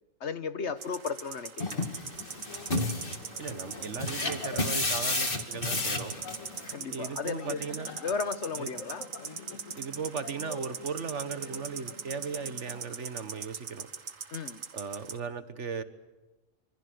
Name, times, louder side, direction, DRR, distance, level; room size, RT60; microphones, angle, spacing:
voice 1, 0.2-1.8 6.6-7.6 8.0-9.0 14.3-14.6, left 5 dB, 60° left, 12 dB, 1.4 m, -34 dB
sound 1, 0.8-15.2, right 6 dB, 85° right, 1.8 m, -42 dB
sound 2, 1.6-6.7, left 2 dB, 45° left, 2.5 m, -32 dB
sound 3, 2.1-12.9, left 4 dB, 85° left, 2.2 m, -47 dB
voice 2, 3.4-6.2 6.9-7.9 8.6-8.7 9.8-13.9 14.7-15.8, right 5 dB, 65° right, 11 dB, 1.7 m, -37 dB
26.5 x 24.5 x 8.0 m, 1.1 s
omnidirectional pair, 1.3 m